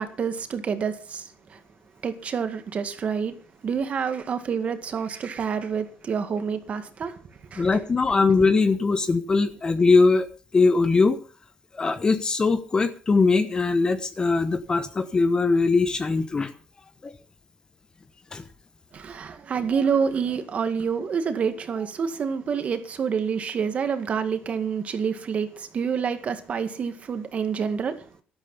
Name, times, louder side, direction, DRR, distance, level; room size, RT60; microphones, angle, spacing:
voice 1, 0.0-1.6 2.0-3.4 3.6-7.2 7.5-7.7 18.9-28.1, right 6 dB, 40° right, 2.0 m, -28 dB
voice 2, 7.6-10.3 10.5-11.2 11.7-16.5 17.0-17.1 18.3-18.4, left 4 dB, 25° left, 1.1 m, -21 dB
12.5 x 12.0 x 5.6 m
cardioid pair, 130°, 3 cm